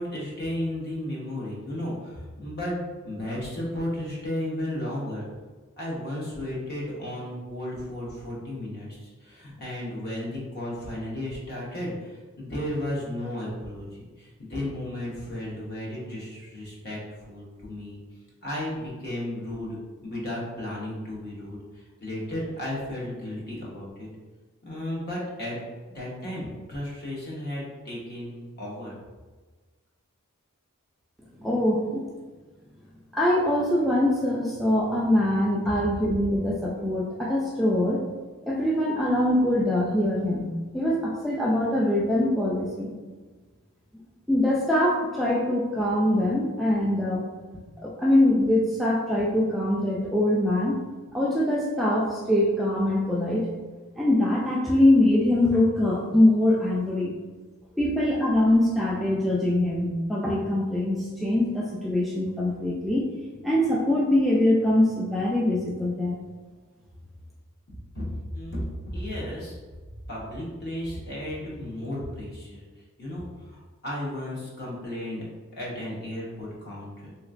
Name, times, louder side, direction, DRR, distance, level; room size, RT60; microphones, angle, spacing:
voice 1, 0.0-2.8 3.0-5.3 5.8-13.9 14.2-18.0 18.4-19.8 20.0-24.1 24.6-28.9 35.7-35.8 67.7-68.1 68.3-69.6 69.8-72.6 73.0-75.2 75.5-77.1, left 1 dB, 50° left, -5 dB, 1.0 m, -34 dB
voice 2, 31.4-32.0 33.1-38.0 38.4-42.9 44.3-47.3 47.5-50.8 51.1-53.5 54.0-57.2 57.8-63.1 63.4-66.2, left 1 dB, ahead, -5 dB, 0.3 m, -23 dB
3.3 x 2.8 x 2.5 m, 1.3 s
head